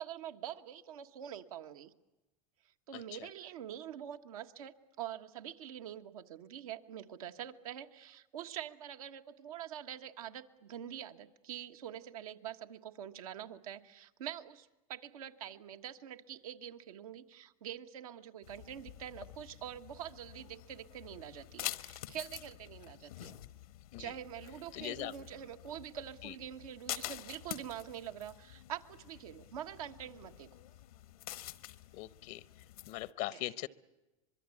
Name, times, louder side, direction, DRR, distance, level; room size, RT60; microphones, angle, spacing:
voice 1, 0.0-1.9 2.9-23.4 24.0-30.5 33.3-33.4, right 10 dB, 80° right, 1.5 m, -45 dB
sound 1, 18.4-33.1, left 14 dB, 85° left, 1.2 m, -48 dB
voice 2, 24.7-25.1 26.2-26.3 31.9-32.4 32.9-33.7, left 16 dB, 60° left, 0.8 m, -40 dB
24.5 x 22.5 x 8.5 m
hypercardioid pair, 105°, 18 cm